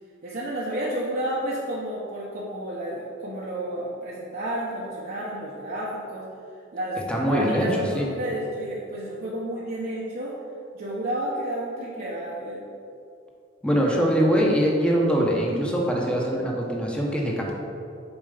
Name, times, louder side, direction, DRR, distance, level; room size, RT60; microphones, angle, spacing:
voice 1, 0.2-6.3 6.7-10.3 10.7-12.6 13.6-14.2 15.7-16.5, right 1 dB, 50° right, -6 dB, 1.1 m, -31 dB
voice 2, 7.1-7.7 7.9-8.1 13.6-17.5, equal, 5° left, -2 dB, 1.2 m, -23 dB
7.1 x 5.2 x 5.1 m, 2.5 s
head